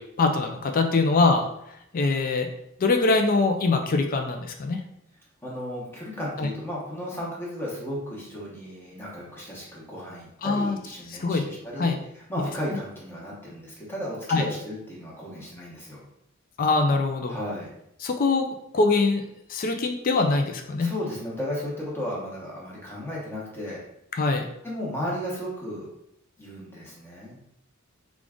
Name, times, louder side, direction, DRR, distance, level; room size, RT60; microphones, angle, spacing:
voice 1, 0.0-1.5 1.9-2.5 2.8-4.8 6.4-6.5 10.4-10.8 11.2-11.4 11.8-12.0 14.3-14.4 16.6-17.4 18.0-18.5 18.7-20.9 24.1-24.4, left 3 dB, 40° left, 5 dB, 0.4 m, -23 dB
voice 2, 5.4-16.0 17.3-17.7 20.8-23.8 24.6-25.9 26.4-27.5, equal, 10° left, -5 dB, 1.0 m, -34 dB
3.7 x 2.4 x 3.6 m, 0.77 s
head